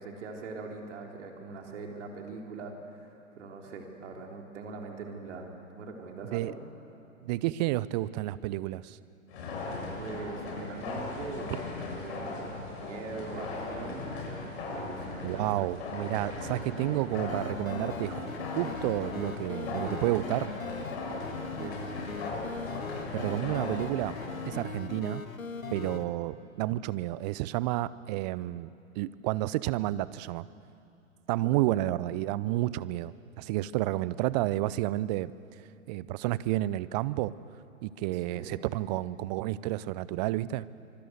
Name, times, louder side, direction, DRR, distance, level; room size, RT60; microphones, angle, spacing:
voice 1, 0.0-6.6 10.0-11.7 12.0-12.5 12.8-14.5 14.7-15.7 21.6-21.9 31.5-31.7 38.3-38.7, right 4 dB, 60° right, 1 dB, 3.9 m, -42 dB
voice 2, 7.2-9.0 15.2-18.2 18.6-20.5 23.1-24.2 24.5-25.2 25.7-30.5 31.3-35.3 35.9-37.3 37.8-40.7, right 16 dB, 30° right, 18 dB, 0.6 m, -30 dB
sound 1, 9.3-24.6, left 3 dB, 50° left, 6.9 m, -38 dB
sound 2, 17.1-26.1, left 4 dB, 85° left, 1.8 m, -39 dB
25.0 x 23.5 x 8.1 m, 2.7 s
figure-of-eight pair, 110°, 40 cm